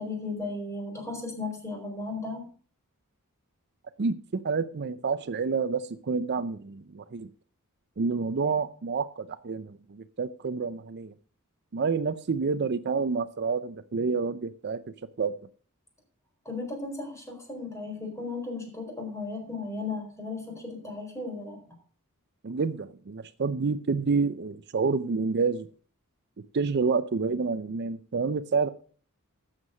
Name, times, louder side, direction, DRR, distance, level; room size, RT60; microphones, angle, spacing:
voice 1, 0.0-2.5 16.4-21.6, left 3 dB, 15° left, 2 dB, 4.2 m, -35 dB
voice 2, 4.4-7.3 8.0-11.1 11.7-14.8 15.2-15.3 22.4-25.7 26.5-28.7, right 4 dB, 50° right, 13 dB, 0.5 m, -28 dB
12.5 x 7.5 x 6.3 m, 0.43 s
head